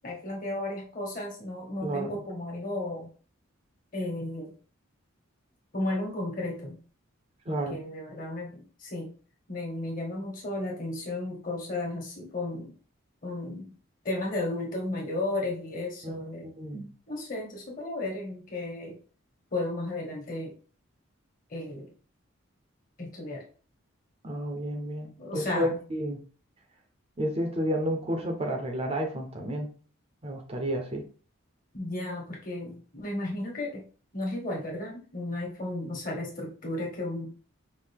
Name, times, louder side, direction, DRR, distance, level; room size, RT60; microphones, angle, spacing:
voice 1, 0.0-3.1 3.9-4.5 5.7-6.8 7.5-9.1 9.5-12.7 13.2-13.7 14.0-16.5 17.1-19.0 19.5-20.5 21.5-21.9 23.0-23.4 25.2-25.8 31.7-33.8 34.1-37.2, left 2 dB, 40° left, -1 dB, 1.5 m, -34 dB
voice 2, 1.8-2.2 7.5-7.8 16.0-16.9 24.2-26.2 27.2-29.7 30.2-31.0, equal, 25° right, 3 dB, 0.6 m, -31 dB
5.2 x 2.6 x 3.5 m, 0.38 s
head